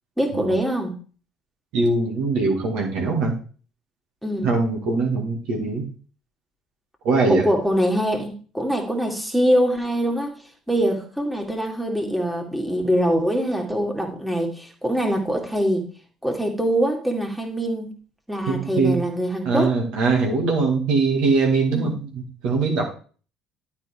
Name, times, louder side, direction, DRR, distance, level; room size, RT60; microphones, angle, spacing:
voice 1, 0.2-0.9 4.2-4.5 7.3-10.3 10.7-15.8 16.2-17.9 18.3-19.8 21.7-21.9, equal, ahead, 1 dB, 2.4 m, -23 dB
voice 2, 1.7-3.4 4.4-5.9 7.0-7.5 18.5-19.0 19.4-22.9, right 3 dB, 60° right, 0 dB, 2.1 m, -22 dB
12.0 x 4.4 x 4.5 m, 0.39 s
figure-of-eight pair, 55°, 0 cm